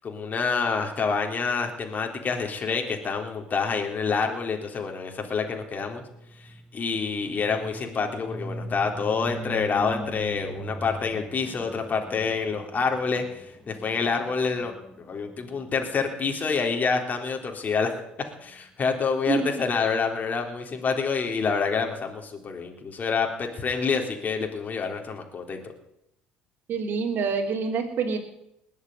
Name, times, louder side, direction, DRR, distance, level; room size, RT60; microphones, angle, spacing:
voice 1, 0.0-6.0 6.4-14.7 15.0-17.9 18.4-25.6, left 5 dB, 40° left, 3 dB, 3.6 m, -27 dB
sound 1, 5.8-15.8, equal, 15° left, 2.7 m, -40 dB
voice 2, 26.7-28.2, right 5 dB, 50° right, 1 dB, 3.6 m, -26 dB
20.0 x 7.4 x 9.5 m, 0.80 s
hypercardioid pair, 70°, 4 cm